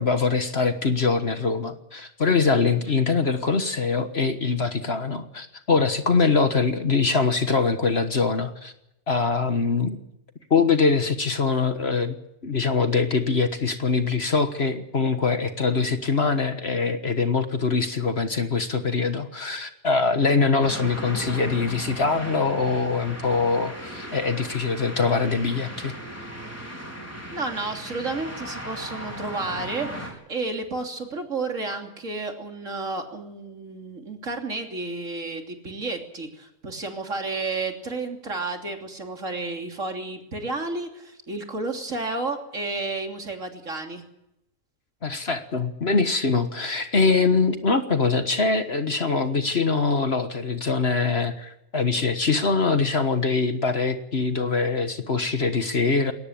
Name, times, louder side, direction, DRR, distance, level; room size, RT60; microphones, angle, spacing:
voice 1, 0.0-8.7 9.1-10.0 10.5-12.2 12.4-25.9 45.0-56.1, left 4 dB, 45° left, 8 dB, 1.6 m, -23 dB
voice 2, 2.7-3.0 27.3-44.0, right 3 dB, 55° right, 3 dB, 3.5 m, -31 dB
sound 1, 20.6-30.1, equal, 10° left, 5.0 m, -37 dB
21.0 x 18.5 x 8.7 m, 0.84 s
omnidirectional pair, 1.6 m